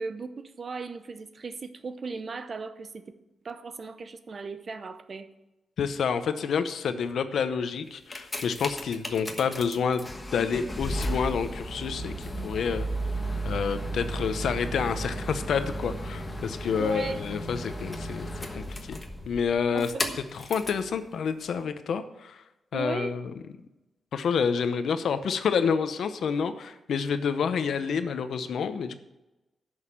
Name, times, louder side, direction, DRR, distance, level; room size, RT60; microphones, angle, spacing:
voice 1, 0.0-3.0 3.4-5.3 16.8-17.2 19.7-20.2 22.7-23.2, right 4 dB, 45° right, 11 dB, 0.8 m, -36 dB
voice 2, 5.8-12.1 12.4-12.9 13.4-18.3 18.5-19.0 19.3-19.9 20.3-22.4 22.7-23.3 24.1-29.0, left 6 dB, 80° left, 10 dB, 0.8 m, -28 dB
sound 1, 7.9-20.9 21.6-21.7, right 1 dB, 20° left, 1.2 m, -34 dB
11.0 x 6.5 x 7.3 m, 0.99 s
wide cardioid pair, 130°, 0 cm